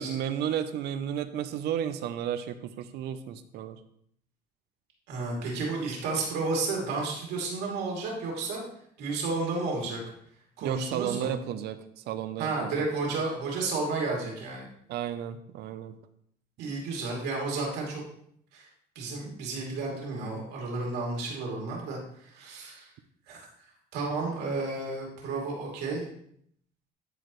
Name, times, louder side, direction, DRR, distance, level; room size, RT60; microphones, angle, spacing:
voice 1, 0.0-3.8 10.6-12.8 14.9-15.9, right 9 dB, 75° right, 11 dB, 0.6 m, -33 dB
voice 2, 5.1-8.6 9.0-10.0 10.6-11.3 12.4-14.7 16.6-18.0 18.5-18.7 18.9-22.9 23.3-23.4 23.9-26.0, right 3 dB, 90° right, -2 dB, 2.7 m, -32 dB
12.5 x 4.8 x 3.1 m, 0.67 s
cardioid pair, 110°, 17 cm